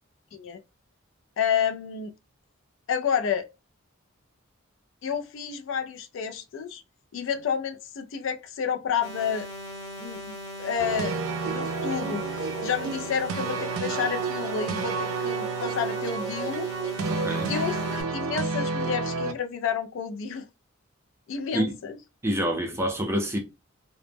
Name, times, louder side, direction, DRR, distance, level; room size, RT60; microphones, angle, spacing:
voice 1, 1.4-2.1 2.9-3.5 5.0-6.8 7.1-9.5 10.0-16.7 17.5-20.5 21.3-22.0, left 7 dB, 65° left, 0.3 m, -30 dB
sound 1, 9.0-18.0, left 1 dB, 15° left, 0.8 m, -39 dB
sound 2, 10.8-19.3, right 4 dB, 80° right, 0.4 m, -30 dB
voice 2, 17.1-17.5 21.5-21.8 22.2-23.4, equal, 15° right, 0.4 m, -27 dB
2.0 x 2.0 x 3.2 m
head